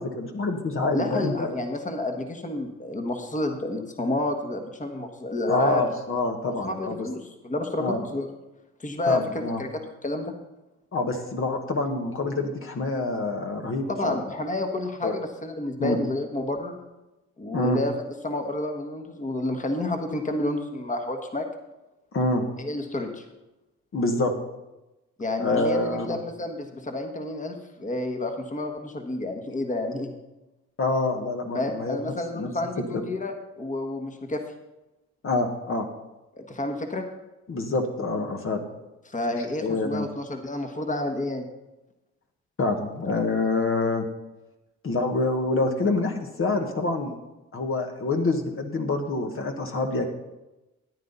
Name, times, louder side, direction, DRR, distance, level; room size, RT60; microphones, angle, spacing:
voice 1, 0.0-1.5 5.5-7.1 7.8-8.0 9.1-9.6 10.9-14.2 15.0-15.1 15.8-16.0 17.5-17.8 22.1-22.4 23.9-24.3 25.4-26.2 30.8-32.5 32.8-32.9 35.2-35.9 37.5-38.7 39.6-40.1 42.6-44.0 44.8-47.1 47.5-50.1, left 2 dB, 45° left, 3 dB, 1.5 m, -26 dB
voice 2, 0.9-5.8 6.5-8.3 8.8-10.3 13.9-16.8 17.4-17.9 18.2-21.5 22.6-23.2 25.2-30.1 31.5-34.4 36.3-37.0 39.1-41.4, left 2 dB, 25° left, 4 dB, 1.5 m, -30 dB
14.0 x 9.6 x 4.1 m, 1.0 s
cardioid pair, 90°, 30 cm